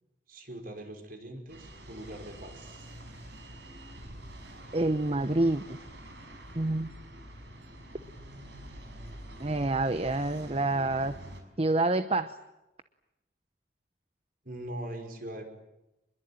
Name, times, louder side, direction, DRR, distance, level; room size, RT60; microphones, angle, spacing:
voice 1, 0.3-2.9 14.5-15.5, right 1 dB, 50° right, 5 dB, 5.3 m, -42 dB
sound 1, 1.5-11.4, right 1 dB, 75° right, 5.9 m, -47 dB
voice 2, 4.7-5.6 6.5-6.9 9.4-11.1 11.6-12.4, right 2 dB, 35° right, 11 dB, 0.9 m, -27 dB
26.5 x 22.0 x 9.1 m, 0.93 s
head